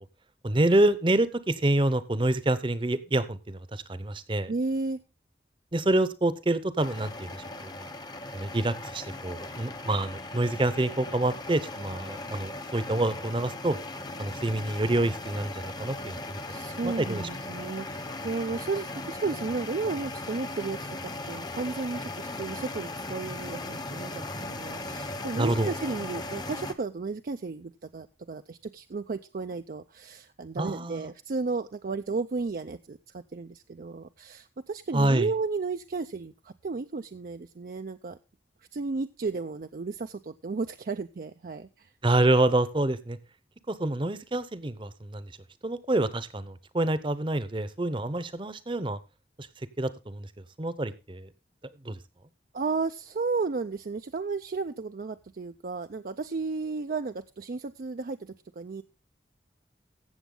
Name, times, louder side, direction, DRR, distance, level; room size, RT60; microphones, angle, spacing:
voice 1, 0.4-4.5 5.7-7.9 8.3-13.8 14.2-16.4 16.8-17.3 25.4-25.7 30.6-31.1 34.9-35.3 42.0-43.2 43.7-45.3 45.6-49.0 49.4-49.5 49.8-50.3 50.6-51.3 51.8-52.0, right 1 dB, 30° right, 15 dB, 0.8 m, -27 dB
voice 2, 4.5-5.0 16.5-38.2 38.7-41.9 52.5-58.8, right 4 dB, 55° right, 8 dB, 0.4 m, -33 dB
sound 1, 6.8-26.7, left 2 dB, 25° left, 0.8 m, -38 dB
15.5 x 7.1 x 3.8 m, 0.30 s
head